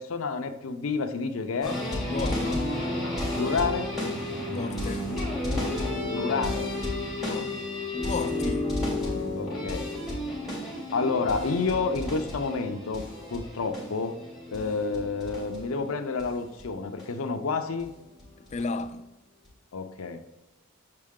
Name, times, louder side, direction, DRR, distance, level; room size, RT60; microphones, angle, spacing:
voice 1, 0.0-1.8 3.4-3.9 6.1-6.7 9.4-9.9 10.9-13.1 13.3-14.2 14.5-17.9 19.7-20.2, left 4 dB, 80° left, 0.5 m, -29 dB
sound 1, 1.6-16.3 16.6-16.7 17.0-17.1 17.8-17.9 18.2-18.8 19.4-19.5, left 1 dB, ahead, 2.4 m, -32 dB
voice 2, 2.1-2.7 4.5-5.1 7.2-7.5 8.0-8.7 18.5-19.1, left 3 dB, 35° left, 0.3 m, -33 dB
7.5 x 4.6 x 3.6 m
head